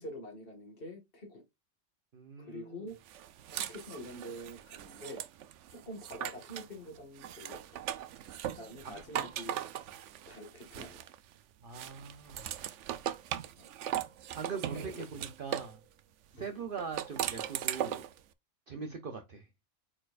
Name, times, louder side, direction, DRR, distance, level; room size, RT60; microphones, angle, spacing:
voice 1, 0.0-1.4 2.4-3.0 3.5-5.2 5.7-7.6 8.5-9.6 10.3-11.1 13.6-13.7 14.7-15.0 16.3-16.7 18.7-19.0, equal, 45° left, 2.2 m, -46 dB
voice 2, 2.1-2.8 11.6-12.5 14.3-15.8 16.3-18.0 18.7-19.5, right 5 dB, 45° right, 1.0 m, -42 dB
sound 1, 3.1-6.7 7.2-11.3 11.7-15.8 16.8-18.2, right 11 dB, 70° right, 0.9 m, -39 dB
8.7 x 4.5 x 2.5 m
omnidirectional pair, 1.3 m